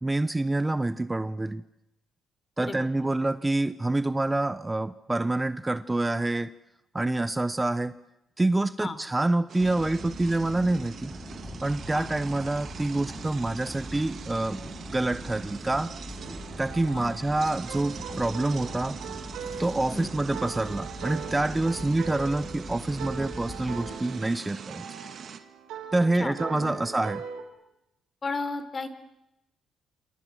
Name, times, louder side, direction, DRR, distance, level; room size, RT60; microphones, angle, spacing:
voice 1, 0.0-1.6 2.6-6.5 6.9-7.9 8.4-11.1 11.6-14.6 14.9-15.9 16.6-19.0 19.6-24.9 25.9-27.2, right 2 dB, 15° right, 15 dB, 0.9 m, -27 dB
sound 1, 9.5-25.4, right 7 dB, 55° right, 2.5 m, -43 dB
sound 2, 9.6-23.9, left 1 dB, 20° left, 7.1 m, -42 dB
sound 3, 16.2-27.4, right 7 dB, 90° right, 5.8 m, -41 dB
voice 2, 26.2-26.8 28.2-28.9, left 3 dB, 35° left, 12 dB, 3.8 m, -34 dB
28.5 x 26.5 x 7.6 m, 0.88 s
cardioid pair, 90°, 0 cm